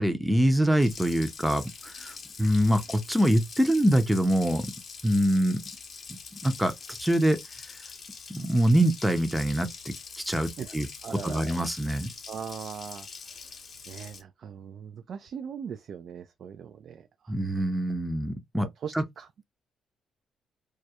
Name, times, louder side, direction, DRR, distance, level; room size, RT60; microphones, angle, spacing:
voice 1, 0.0-2.1 2.4-4.7 5.0-5.6 6.4-6.7 7.0-7.4 8.3-10.9 11.2-12.1 17.3-18.7 18.9-19.0, right 1 dB, 5° right, 0.5 m, -24 dB
Water tap faucet, 0.8-14.2, left 5 dB, 50° left, 0.6 m, -44 dB
voice 2, 11.0-11.6 12.3-13.1 13.9-17.3 18.8-19.4, right 7 dB, 60° right, 0.3 m, -40 dB
2.3 x 2.0 x 2.7 m
cardioid pair, 90°, 0 cm